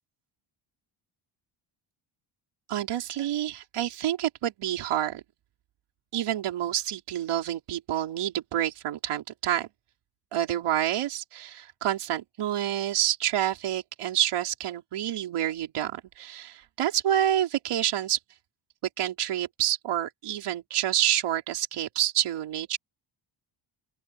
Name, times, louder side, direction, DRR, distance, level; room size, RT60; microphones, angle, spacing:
voice 1, 2.7-5.2 6.1-9.7 10.3-18.2 19.0-22.8, right 11 dB, 80° right, 4.4 m, -28 dB
open air
cardioid pair, 115°, 50 cm